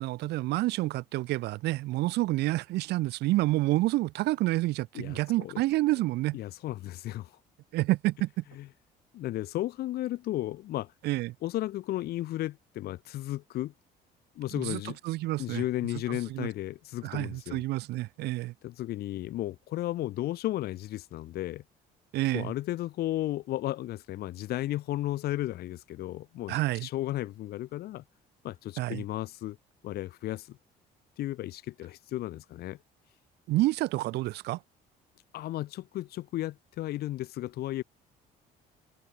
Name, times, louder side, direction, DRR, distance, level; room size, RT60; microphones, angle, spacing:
voice 1, 0.0-6.4 7.7-8.4 11.0-11.3 14.6-15.6 16.1-16.5 17.0-18.5 22.1-22.5 26.5-26.9 28.8-29.0 33.5-34.6, right 18 dB, 80° right, 1.0 m, -29 dB
voice 2, 4.9-5.6 6.3-7.4 8.6-8.7 9.1-10.9 11.4-13.7 14.4-15.0 15.4-17.6 18.6-21.6 22.3-28.0 28.4-29.6 29.8-30.6 31.2-32.8 35.3-37.8, left 15 dB, 70° left, 0.9 m, -34 dB
cardioid pair, 110°, 17 cm